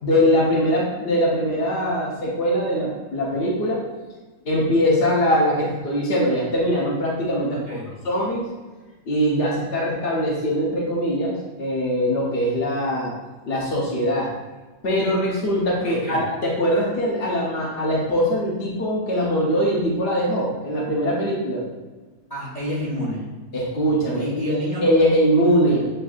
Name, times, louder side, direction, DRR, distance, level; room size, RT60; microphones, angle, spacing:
voice 1, 0.0-3.8 4.4-7.6 8.0-8.5 9.0-13.1 13.4-14.3 14.8-21.6 23.5-24.6 24.8-25.9, equal, 65° left, -4 dB, 0.6 m, -22 dB
voice 2, 7.5-7.9 15.8-16.2 22.3-23.2 24.1-24.8 25.6-25.9, left 1 dB, 25° left, -7 dB, 0.9 m, -29 dB
7.8 x 2.6 x 2.4 m, 1.2 s
omnidirectional pair, 2.2 m